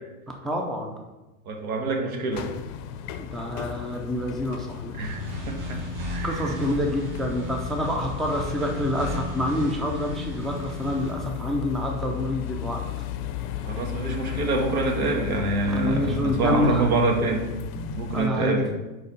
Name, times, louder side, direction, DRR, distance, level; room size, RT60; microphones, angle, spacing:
voice 1, 0.4-0.9 3.2-4.9 6.2-13.1 15.7-16.9 18.1-18.6, left 1 dB, ahead, 1 dB, 0.3 m, -27 dB
voice 2, 1.4-2.5 4.9-5.8 6.1-6.5 13.6-17.4 17.7-18.6, right 3 dB, 85° right, 2 dB, 1.5 m, -26 dB
sound 1, 2.3-18.3, left 11 dB, 45° left, 0.6 m, -35 dB
sound 2, 5.0-11.1, equal, 50° right, 2.0 m, -35 dB
4.6 x 4.1 x 5.1 m, 1.1 s
hypercardioid pair, 110°, 42 cm